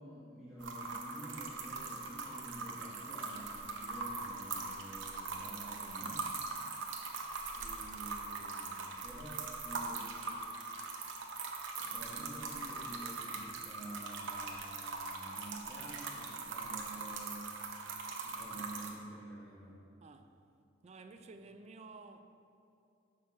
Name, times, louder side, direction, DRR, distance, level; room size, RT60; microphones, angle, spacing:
voice 1, 0.0-6.3 7.5-10.3 11.7-17.5 18.2-19.8, right 1 dB, ahead, 1.3 m, -49 dB
sound 1, 0.6-18.9, right 4 dB, 70° right, 0.8 m, -41 dB
voice 2, 20.0-20.4 20.8-22.2, right 3 dB, 35° right, 0.4 m, -52 dB
6.8 x 5.4 x 3.9 m
head